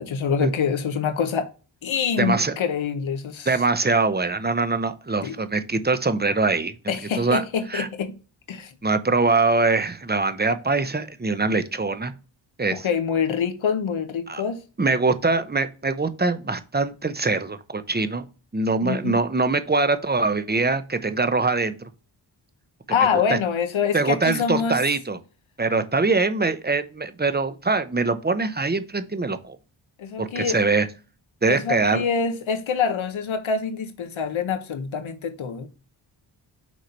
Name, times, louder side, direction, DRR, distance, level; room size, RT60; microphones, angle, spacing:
voice 1, 0.0-1.5 1.8-3.5 5.2-5.3 6.9-8.1 8.5-8.8 12.7-14.6 18.8-19.2 22.9-24.8 30.0-30.8 31.5-35.7, left 6 dB, 75° left, 1.2 m, -25 dB
voice 2, 2.2-2.5 3.5-7.4 7.7-7.9 8.8-12.1 12.6-12.9 14.3-14.4 14.8-18.2 18.5-21.9 23.0-23.4 23.9-25.2 25.6-29.6 30.2-30.9 31.4-32.0, right 3 dB, 20° right, 0.9 m, -23 dB
6.2 x 3.8 x 4.3 m
cardioid pair, 50°, 47 cm